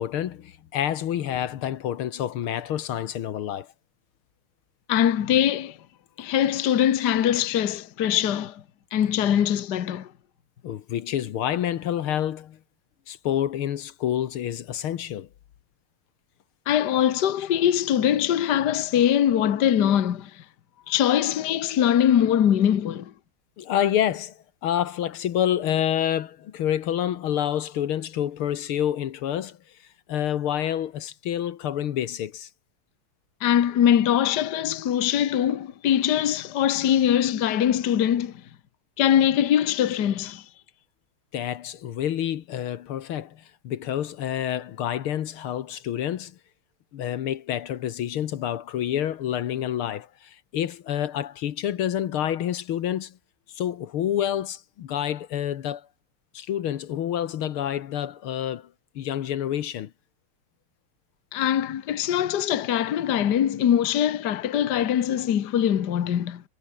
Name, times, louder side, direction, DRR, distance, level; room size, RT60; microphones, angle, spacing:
voice 1, 0.0-3.7 10.6-12.6 13.1-15.3 23.6-29.6 30.1-32.5 41.3-46.4 46.9-53.2 53.5-55.9 56.3-58.7 59.0-59.9, left 10 dB, 75° left, 2.0 m, -28 dB
voice 2, 4.9-5.8 6.2-8.6 8.9-10.1 16.7-20.3 20.9-23.1 33.4-38.3 39.0-40.4 61.3-66.4, left 10 dB, 55° left, 1.7 m, -22 dB
omnidirectional pair, 2.4 m